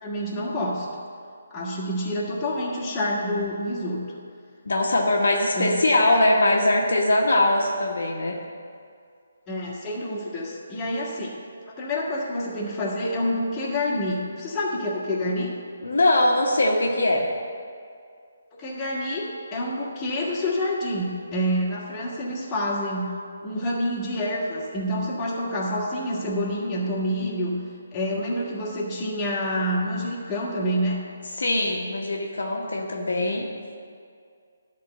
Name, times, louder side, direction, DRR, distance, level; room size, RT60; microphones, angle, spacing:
voice 1, 0.0-0.9 1.5-4.0 5.5-6.1 9.5-11.4 11.7-15.5 18.5-23.1 23.4-27.6 27.9-31.0, equal, 20° left, -6 dB, 1.7 m, -27 dB
voice 2, 4.6-8.4 15.8-17.3 28.1-28.4 31.4-33.4, left 1 dB, 70° left, -1 dB, 1.2 m, -21 dB
11.0 x 3.7 x 7.6 m, 2.3 s
figure-of-eight pair, 150°, 0 cm